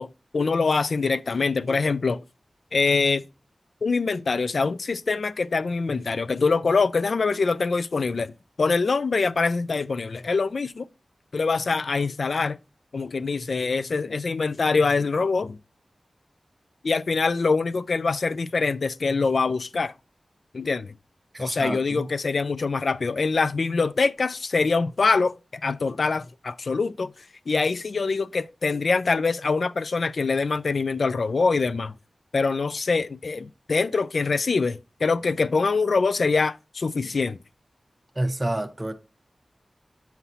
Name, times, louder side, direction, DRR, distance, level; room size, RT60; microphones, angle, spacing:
voice 1, 0.0-2.2 2.7-3.2 3.8-8.3 8.6-10.9 11.3-12.6 12.9-15.6 16.8-19.9 20.5-20.9 21.4-25.3 25.6-27.1 27.5-31.9 32.3-37.4, left 4 dB, 75° left, 0.3 m, -24 dB
voice 2, 21.3-22.0 38.2-38.9, right 1 dB, 20° right, 0.8 m, -28 dB
7.1 x 5.7 x 2.7 m
wide cardioid pair, 95°, 0 cm